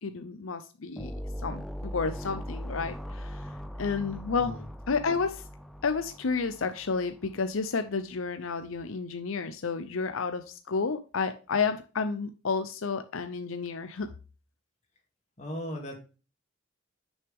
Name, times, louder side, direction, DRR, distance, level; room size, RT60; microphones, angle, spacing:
voice 1, 0.0-1.1 1.4-3.4 3.8-4.6 4.9-5.4 5.8-14.1, left 4 dB, 85° left, 9 dB, 0.7 m, -31 dB
sound 1, 1.0-7.4, equal, ahead, 0.5 m, -40 dB
voice 2, 15.4-16.0, equal, 35° left, 1 dB, 2.5 m, -37 dB
9.1 x 6.4 x 3.6 m, 0.33 s
head